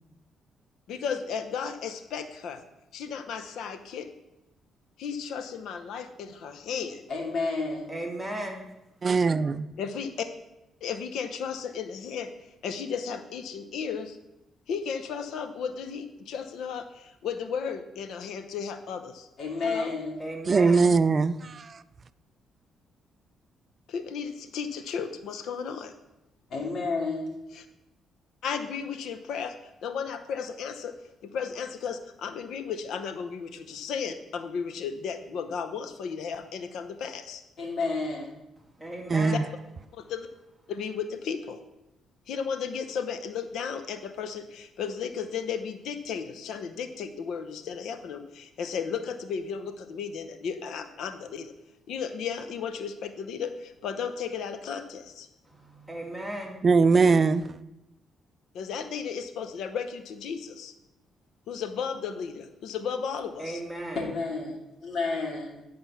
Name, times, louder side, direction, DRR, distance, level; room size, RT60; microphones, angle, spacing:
voice 1, 0.9-2.6 2.9-4.1 5.0-7.0 9.8-10.3 10.8-14.2 14.7-19.3 19.6-19.9 23.9-25.9 27.5-27.6 28.4-29.5 29.8-30.9 31.2-37.4 39.9-40.3 40.7-41.6 42.3-51.5 51.9-55.3 58.5-60.7 61.5-63.6, left 6 dB, 75° left, 0.8 m, -34 dB
voice 2, 7.1-7.9 19.4-20.2 26.5-27.3 37.6-38.3 63.9-65.6, left 3 dB, 60° left, 2.7 m, -30 dB
voice 3, 7.9-8.6 20.2-20.9 38.8-39.5 55.4-56.6 63.4-64.1, right 1 dB, 5° right, 2.0 m, -36 dB
voice 4, 9.0-9.7 20.5-21.4 39.1-39.4 56.6-57.5, right 4 dB, 40° right, 0.4 m, -21 dB
10.0 x 5.1 x 5.7 m
cardioid pair, 90°, 0 cm